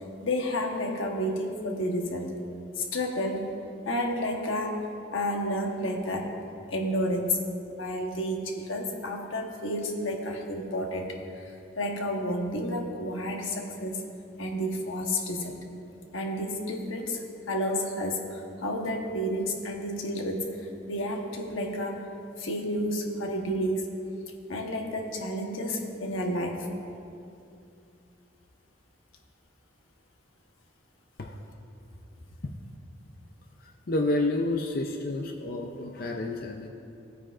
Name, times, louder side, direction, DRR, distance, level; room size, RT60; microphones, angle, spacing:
voice 1, 0.2-2.3 2.8-3.5 3.8-4.8 5.1-6.3 6.7-7.4 7.7-14.0 14.4-15.6 16.1-22.1 22.4-23.9 24.5-26.7, equal, 90° left, 1 dB, 1.2 m, -31 dB
voice 2, 33.9-36.7, left 2 dB, 50° left, 2 dB, 0.5 m, -29 dB
17.5 x 9.0 x 2.5 m, 2.6 s
head